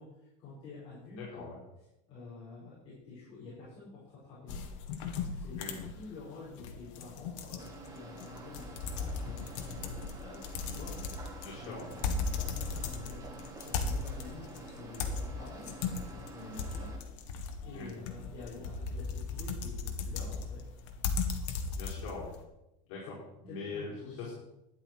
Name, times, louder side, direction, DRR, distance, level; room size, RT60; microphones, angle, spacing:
voice 1, 0.0-1.5 2.1-4.6 5.3-11.0 11.6-16.9 17.2-17.3 17.6-20.6 23.5-24.3, left 3 dB, 35° left, -9 dB, 5.0 m, -48 dB
voice 2, 1.1-1.6 5.6-5.8 11.4-11.9 17.7-17.9 21.7-22.3 22.9-24.3, left 3 dB, 60° left, -6 dB, 4.9 m, -42 dB
sound 1, 4.5-22.4, left 4 dB, 80° left, 1.7 m, -37 dB
sound 2, 7.6-17.0, right 3 dB, 20° right, 1.6 m, -49 dB
12.5 x 10.5 x 4.6 m, 0.88 s
cardioid pair, 180°, 16 cm